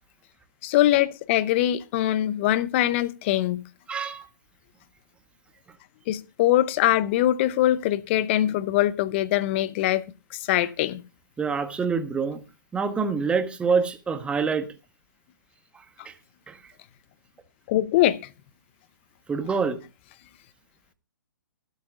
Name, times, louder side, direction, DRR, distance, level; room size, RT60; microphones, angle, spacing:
voice 1, 0.6-3.6 6.1-10.0 10.3-11.0 17.7-18.2, left 13 dB, 35° left, 0.8 m, -22 dB
voice 2, 3.9-4.2 11.4-12.4 12.7-14.7 15.7-16.1 16.5-16.7 19.3-19.8, right 5 dB, 10° right, 1.2 m, -26 dB
24.0 x 8.3 x 2.5 m
figure-of-eight pair, 130°, 11 cm